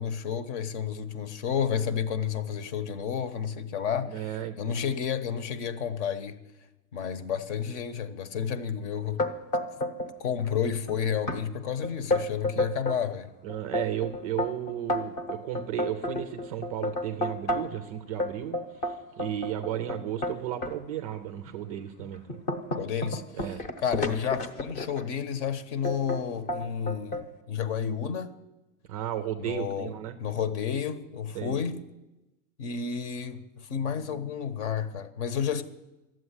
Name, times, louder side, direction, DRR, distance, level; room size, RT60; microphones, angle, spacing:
voice 1, 0.0-6.4 6.9-9.2 10.2-13.3 22.7-23.2 23.8-28.3 29.4-29.9 30.2-31.8 32.6-35.6, left 7 dB, 55° left, 1.2 m, -31 dB
voice 2, 4.1-4.7 13.4-22.2 23.3-23.6 28.9-30.1 31.3-31.6, right 11 dB, 30° right, 0.4 m, -34 dB
sound 1, 9.2-10.1 10.4-10.9 11.3-11.4 11.8-13.0 13.5-17.8 18.2-20.7 21.4-21.5 22.0-25.1 25.8-26.2 26.5-27.3, left 1 dB, 25° left, 0.8 m, -31 dB
12.5 x 7.8 x 9.7 m
supercardioid pair, 175°, 41 cm